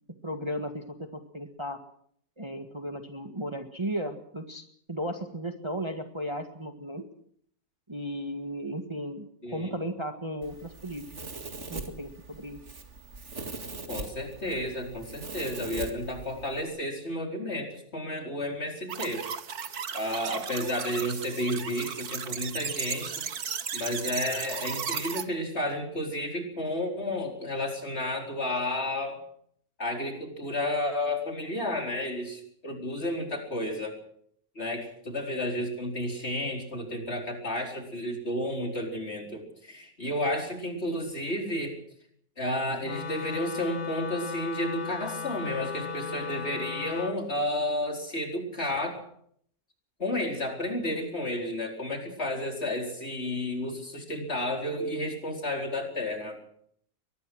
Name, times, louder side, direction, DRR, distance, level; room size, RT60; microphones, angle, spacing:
voice 1, 0.2-1.8 2.4-7.0 7.9-11.1 11.7-12.6, equal, 20° right, 6 dB, 1.7 m, -35 dB
Domestic sounds home sounds, 10.4-16.6, right 3 dB, 50° right, 2.6 m, -41 dB
voice 2, 13.9-19.2 19.9-23.4 23.7-29.2 29.8-34.0 34.5-41.8 42.4-49.0 50.0-56.4, left 1 dB, 45° left, 3 dB, 4.8 m, -32 dB
sound 1, 18.9-25.2, right 7 dB, 85° right, 1.9 m, -35 dB
Wind instrument woodwind instrument, 42.8-47.2, left 6 dB, 65° left, 1.6 m, -37 dB
23.5 x 20.0 x 6.3 m, 0.65 s
omnidirectional pair, 1.6 m